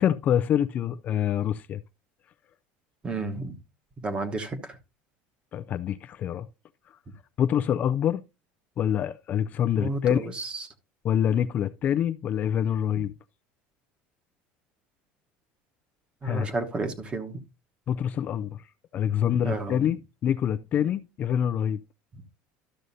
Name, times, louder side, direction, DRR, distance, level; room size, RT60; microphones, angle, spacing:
voice 1, 0.0-1.8 5.5-6.5 7.4-8.2 8.8-10.3 11.0-13.1 16.2-16.5 17.9-18.6 18.9-21.8, left 9 dB, 40° left, 0.4 m, -26 dB
voice 2, 3.0-3.6 4.0-4.8 9.8-10.7 16.2-17.4 19.4-20.0, right 3 dB, 25° right, 1.1 m, -32 dB
12.5 x 6.3 x 2.7 m
cardioid pair, 130°, 4 cm